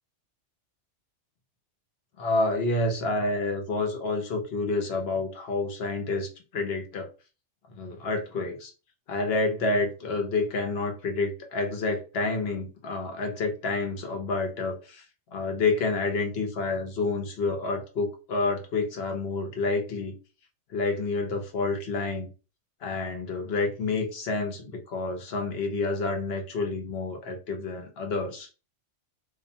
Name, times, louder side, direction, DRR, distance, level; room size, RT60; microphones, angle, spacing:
voice 1, 2.2-7.1 7.7-8.7 9.1-15.0 15.3-20.2 20.7-22.3 22.8-28.5, left 3 dB, 65° left, 4 dB, 0.9 m, -29 dB
2.4 x 2.1 x 2.7 m, 0.32 s
omnidirectional pair, 1.2 m